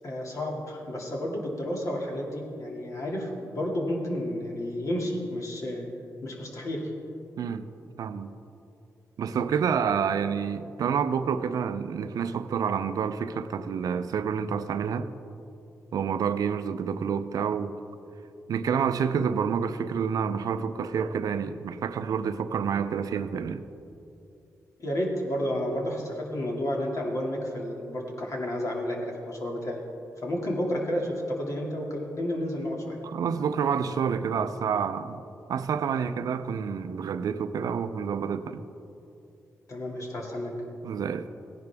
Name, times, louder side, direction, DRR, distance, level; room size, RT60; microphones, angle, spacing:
voice 1, 0.0-5.9 6.2-6.9 24.8-29.8 30.2-33.0 39.7-40.6, left 1 dB, 55° left, -1 dB, 2.4 m, -31 dB
voice 2, 7.4-7.7 8.0-8.3 9.2-15.1 15.9-17.7 18.5-23.6 33.0-35.2 35.5-38.7 40.8-41.3, right 7 dB, 75° right, 11 dB, 0.5 m, -28 dB
16.5 x 10.5 x 3.5 m, 2.8 s
cardioid pair, 70°, 6 cm